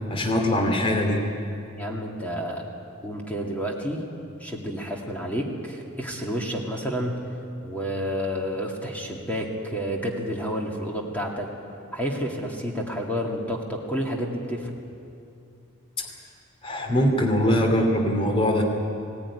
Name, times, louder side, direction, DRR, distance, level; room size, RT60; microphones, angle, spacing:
voice 1, 0.1-1.2 16.6-18.6, left 1 dB, 25° left, 2 dB, 2.6 m, -22 dB
voice 2, 1.7-2.6 3.0-4.1 4.4-7.2 7.6-11.5 11.9-14.7, equal, 5° left, -1 dB, 2.2 m, -30 dB
20.0 x 18.0 x 9.9 m, 2.6 s
head